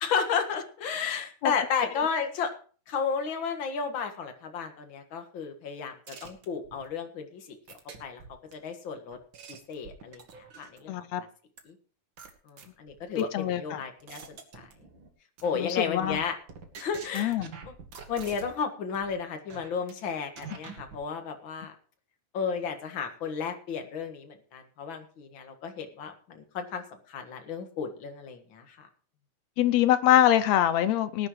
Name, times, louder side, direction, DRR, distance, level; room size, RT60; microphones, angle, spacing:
voice 1, 0.0-2.5 2.9-8.2 8.5-9.2 9.5-10.2 10.6-11.0 11.7-11.8 12.5-14.7 15.4-16.3 16.8-17.4 17.7-17.8 18.1-21.7 22.3-28.9, left 6 dB, 45° left, 2.0 m, -33 dB
sound 1, 6.1-6.9 7.7-8.5 9.1-10.9 11.6-11.7 12.2-13.2 13.7-15.1 15.4-15.7 16.0-18.6 18.9-19.1 19.5-19.9 20.4-21.0, right 5 dB, 45° right, 1.9 m, -46 dB
voice 2, 10.9-11.2 13.2-13.8 15.6-16.2 17.1-17.5 29.6-31.3, left 12 dB, 75° left, 1.7 m, -24 dB
19.0 x 11.0 x 3.1 m
omnidirectional pair, 3.6 m